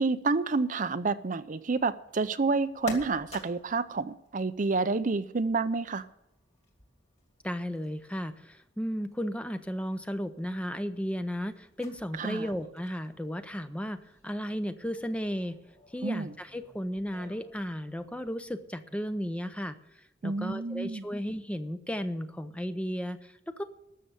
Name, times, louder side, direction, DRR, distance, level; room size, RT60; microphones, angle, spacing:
voice 1, 0.0-6.0 12.2-12.4 16.0-16.3 20.2-21.0, right 3 dB, 40° right, 0.5 m, -29 dB
sound 1, 1.7-18.7, left 2 dB, 35° left, 2.6 m, -51 dB
voice 2, 7.4-15.6 15.9-23.6, equal, 5° left, 0.6 m, -34 dB
13.0 x 6.8 x 8.9 m
head